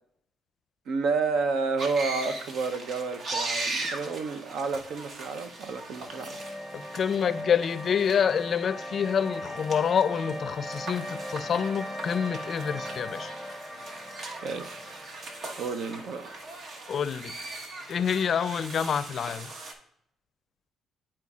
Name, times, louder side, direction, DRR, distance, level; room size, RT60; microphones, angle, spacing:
voice 1, 0.9-6.4 14.4-14.8 15.6-16.3, right 4 dB, 75° right, 0.7 m, -30 dB
sound 1, 1.8-19.7, right 2 dB, 60° right, 1.1 m, -39 dB
sound 2, 5.5-16.6, left 1 dB, 5° right, 1.0 m, -39 dB
voice 2, 6.7-13.4 16.9-17.3 17.9-19.5, left 7 dB, 55° left, 0.4 m, -27 dB
11.0 x 4.4 x 2.4 m
cardioid pair, 90°, 0 cm